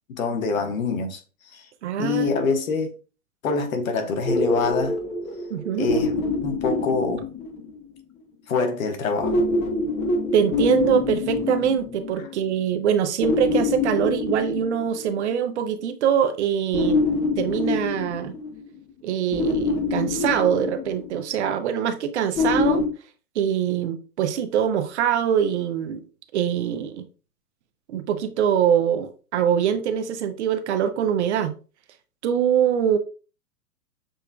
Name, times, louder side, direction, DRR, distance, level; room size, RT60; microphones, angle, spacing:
voice 1, 0.1-1.2 1.5-1.6 2.0-2.9 3.4-4.9 5.7-6.1 6.4-7.3 8.5-9.4, left 4 dB, 60° left, 1.3 m, -25 dB
voice 2, 1.8-2.3 5.5-5.9 10.3-17.0 17.4-18.3 19.0-22.9 23.4-26.0 26.3-27.0 27.9-31.5 32.2-33.0, right 8 dB, 45° right, 0.7 m, -23 dB
sound 1, 4.2-7.9 9.2-12.5 13.2-15.3 16.7-18.8 19.3-21.4 22.4-22.9, left 3 dB, 15° left, 0.5 m, -25 dB
6.8 x 3.4 x 2.3 m
figure-of-eight pair, 110°, 47 cm